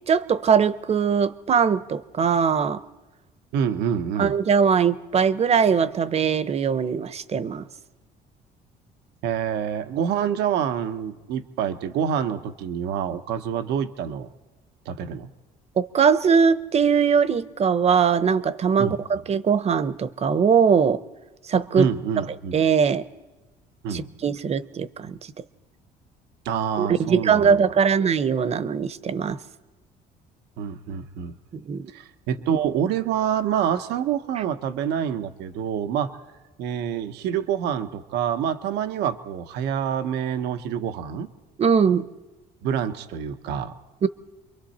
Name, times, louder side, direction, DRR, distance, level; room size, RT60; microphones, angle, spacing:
voice 1, 0.1-2.8 4.2-7.7 15.8-21.0 21.5-21.9 22.5-23.1 23.9-25.2 26.8-29.4 31.7-31.9 41.6-42.1 44.0-44.1, right 6 dB, 40° right, 14 dB, 0.9 m, -21 dB
voice 2, 3.5-4.3 9.2-14.3 14.9-15.3 18.8-19.0 21.8-22.5 23.8-24.1 26.4-27.6 30.6-31.3 31.9-36.2 36.6-41.3 42.6-43.7, right 8 dB, 85° right, 8 dB, 1.1 m, -27 dB
28.0 x 23.0 x 4.3 m, 1.1 s
cardioid pair, 110°, 17 cm